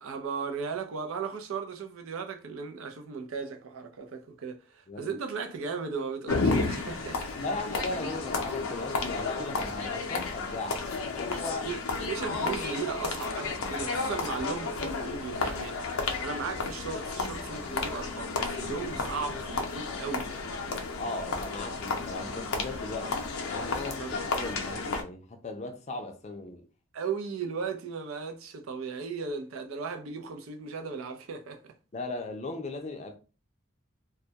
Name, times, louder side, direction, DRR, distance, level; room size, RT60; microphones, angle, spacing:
voice 1, 0.0-7.2 11.6-20.3 24.0-24.2 26.9-31.6, right 5 dB, 90° right, 0.5 m, -36 dB
sound 1, 6.3-25.0, left 3 dB, 90° left, 0.5 m, -32 dB
voice 2, 7.4-10.8 11.1-11.7 20.9-26.6 31.9-33.2, left 2 dB, 35° left, 0.4 m, -37 dB
2.2 x 2.1 x 2.7 m
head